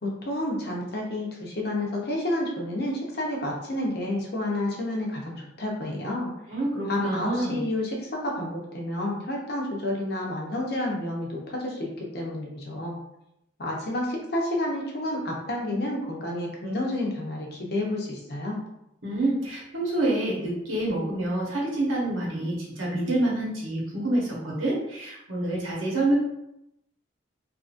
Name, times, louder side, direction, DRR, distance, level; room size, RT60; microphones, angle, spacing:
voice 1, 0.0-6.3 6.9-13.0 13.6-18.6, left 1 dB, 50° left, -1 dB, 0.6 m, -30 dB
voice 2, 6.5-7.6 19.0-26.2, right 1 dB, 85° right, -4 dB, 1.0 m, -27 dB
2.8 x 2.5 x 2.5 m, 0.83 s
head